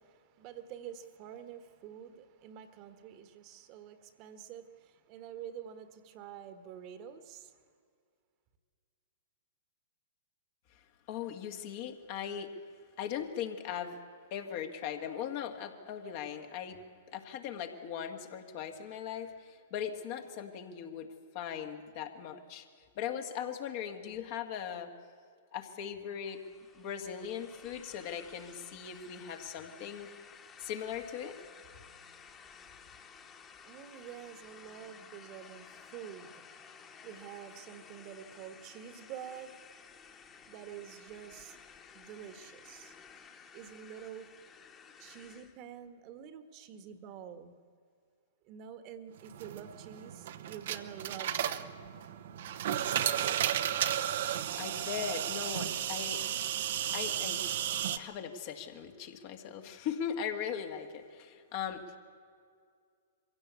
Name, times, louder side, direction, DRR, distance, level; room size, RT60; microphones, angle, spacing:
voice 1, 0.0-7.6 32.9-42.9 43.5-44.3 45.0-47.5 48.4-51.8, right 9 dB, 40° right, 10 dB, 1.5 m, -48 dB
voice 2, 11.1-12.5 13.0-14.0 14.3-16.8 17.1-21.1 21.3-22.7 23.0-24.9 25.5-26.4 26.7-30.1 30.6-31.4 54.6-56.2 56.9-57.4 57.9-62.0, left 8 dB, 50° left, 5 dB, 2.1 m, -39 dB
sound 1, 26.3-45.6, left 6 dB, 25° left, 1.8 m, -54 dB
sound 2, 49.2-58.0, right 10 dB, 60° right, 1.0 m, -34 dB
23.0 x 16.0 x 8.3 m, 2.2 s
hypercardioid pair, 115°, 0 cm